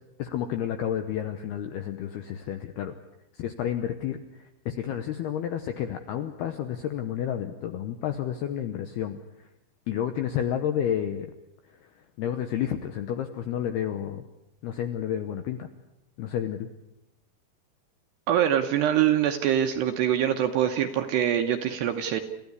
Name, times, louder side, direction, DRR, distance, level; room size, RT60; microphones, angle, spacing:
voice 1, 0.2-2.9 3.4-9.2 9.9-11.3 12.2-14.2 14.6-15.7 16.2-16.7, left 10 dB, 80° left, 8 dB, 2.3 m, -30 dB
voice 2, 18.3-22.2, right 10 dB, 75° right, 6 dB, 2.6 m, -24 dB
29.0 x 14.5 x 9.7 m, 0.92 s
omnidirectional pair, 6.0 m